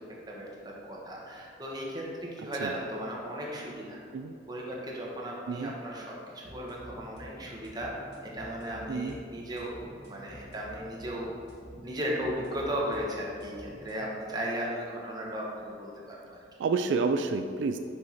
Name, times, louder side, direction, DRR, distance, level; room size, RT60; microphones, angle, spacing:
voice 1, 0.3-4.0 4.5-7.9 8.2-11.3 11.8-16.4, equal, 25° right, -3 dB, 1.1 m, -36 dB
sound 1, 6.4-14.0, equal, 65° right, 1.5 m, -49 dB
voice 2, 16.6-17.8, right 4 dB, 80° right, 8 dB, 0.3 m, -29 dB
6.2 x 4.6 x 4.3 m, 2.4 s
head